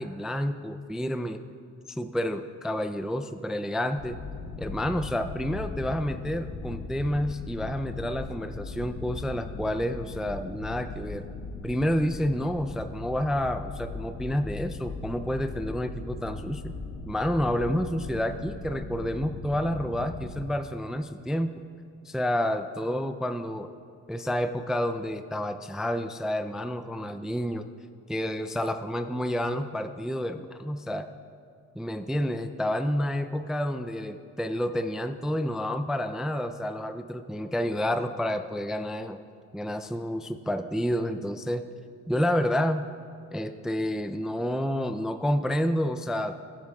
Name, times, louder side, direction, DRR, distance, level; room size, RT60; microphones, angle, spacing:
voice 1, 0.0-1.4 1.9-4.2 4.6-11.3 11.6-16.7 17.0-21.6 22.0-23.7 24.1-27.7 28.1-31.1 31.8-39.2 39.5-41.6 42.1-42.9 43.3-46.4, equal, ahead, 8 dB, 0.3 m, -29 dB
sound 1, 4.0-20.4, left 4 dB, 70° left, 1.0 m, -39 dB
22.5 x 7.6 x 2.3 m, 2.3 s
cardioid pair, 90°, 30 cm